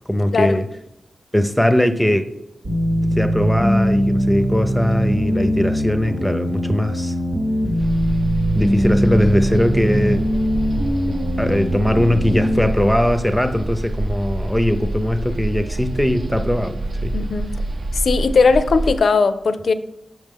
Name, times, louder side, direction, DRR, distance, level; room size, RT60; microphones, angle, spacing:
voice 1, 0.1-0.6 1.3-2.2 3.0-7.1 8.6-10.2 11.4-17.2, left 1 dB, 5° left, 0.5 m, -20 dB
sound 1, 2.6-12.6, equal, 65° right, 1.0 m, -21 dB
sound 2, 7.8-19.0, right 2 dB, 50° right, 0.3 m, -27 dB
voice 2, 17.1-17.5 17.9-19.7, left 4 dB, 65° left, 0.4 m, -18 dB
6.3 x 6.0 x 3.6 m
wide cardioid pair, 130°, 0 cm